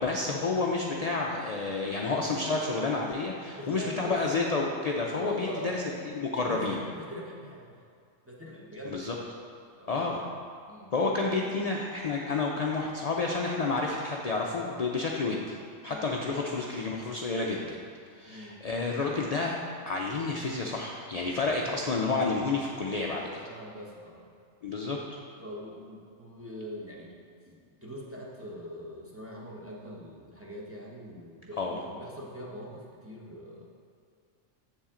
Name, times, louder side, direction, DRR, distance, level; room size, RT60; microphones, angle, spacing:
voice 1, 0.0-5.8 6.1-6.8 8.9-9.2 9.9-10.2 10.9-15.6 15.8-17.8 18.2-19.6 19.9-23.4 24.6-25.0 31.6-31.8, left 3 dB, 65° left, -1 dB, 0.4 m, -30 dB
voice 2, 3.5-4.3 5.2-5.8 6.4-7.8 8.2-9.3 9.8-10.0 10.7-10.9 15.8-16.1 17.9-18.6 23.3-24.3 25.4-27.2 27.4-33.6, equal, 10° right, -4 dB, 0.8 m, -43 dB
7.5 x 7.1 x 3.7 m, 2.3 s
omnidirectional pair, 1.4 m